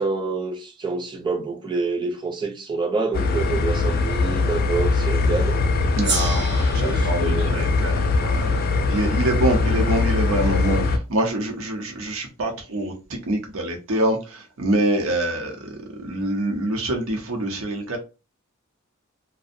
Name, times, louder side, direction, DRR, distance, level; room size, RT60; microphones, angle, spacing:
voice 1, 0.0-5.6 6.7-7.6, right 4 dB, 20° right, 0.5 m, -27 dB
sound 1, 3.1-11.0, left 3 dB, 45° left, 0.3 m, -21 dB
Gong, 6.0-10.8, right 4 dB, 55° right, 0.9 m, -34 dB
voice 2, 6.0-18.0, right 1 dB, 85° right, 0.7 m, -25 dB
2.5 x 2.0 x 2.5 m
head